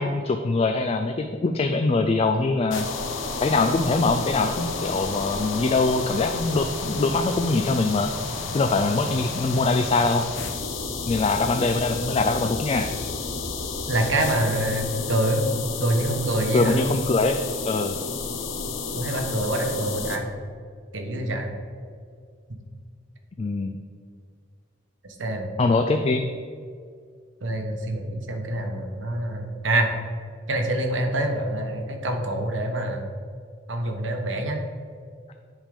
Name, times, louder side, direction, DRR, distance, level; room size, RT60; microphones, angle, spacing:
voice 1, 0.0-2.9 3.4-8.1 8.5-10.2 11.0-12.9 16.5-18.0 23.4-23.7 25.6-26.2, left 3 dB, 30° left, 6 dB, 0.3 m, -23 dB
sound 1, 2.7-20.2, left 4 dB, 80° left, 0.8 m, -31 dB
voice 2, 13.9-15.5 15.8-16.8 18.9-20.3 20.9-21.5 25.2-25.5 27.4-29.9 30.5-33.1 33.7-34.6, right 1 dB, 75° right, 3 dB, 1.1 m, -26 dB
10.0 x 3.7 x 5.1 m, 2.1 s
head